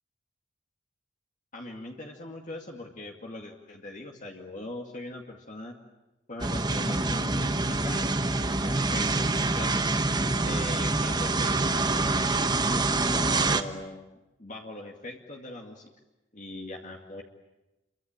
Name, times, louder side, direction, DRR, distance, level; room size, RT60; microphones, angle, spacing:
voice 1, 1.5-5.8 6.3-9.8 10.4-12.2 13.1-14.1 14.4-15.9 16.3-17.2, left 2 dB, 40° left, 1 dB, 2.2 m, -41 dB
sound 1, 6.4-13.6, right 2 dB, 20° right, 1.2 m, -26 dB
28.5 x 23.5 x 8.9 m, 1.0 s
head